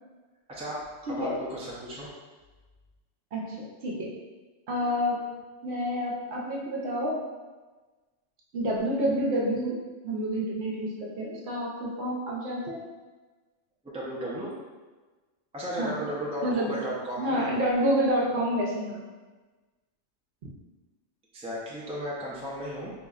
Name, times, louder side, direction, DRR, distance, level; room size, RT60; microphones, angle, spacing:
voice 1, 0.5-0.9 1.2-2.1 13.8-14.5 15.5-17.5 21.3-22.9, equal, 5° right, -6 dB, 0.6 m, -34 dB
voice 2, 1.1-1.4 3.3-4.1 4.7-5.2 5.6-7.2 8.5-12.8 15.8-16.0 16.4-16.7 17.2-19.1, equal, 65° right, -3 dB, 0.9 m, -28 dB
4.1 x 3.0 x 2.4 m, 1.3 s
omnidirectional pair, 1.2 m